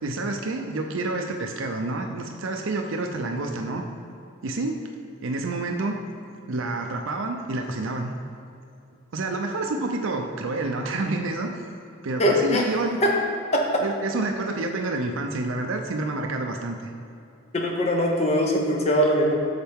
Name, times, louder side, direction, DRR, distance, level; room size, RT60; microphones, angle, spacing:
voice 1, 0.0-3.8 4.4-4.8 5.2-6.0 6.5-8.1 9.1-11.5 12.0-13.0 13.8-16.9, right 2 dB, 80° right, 3 dB, 0.6 m, -28 dB
voice 2, 12.2-12.7 13.0-13.1 13.5-13.6 17.5-19.3, equal, 30° left, 1 dB, 0.7 m, -21 dB
8.9 x 6.6 x 3.6 m, 2.6 s
head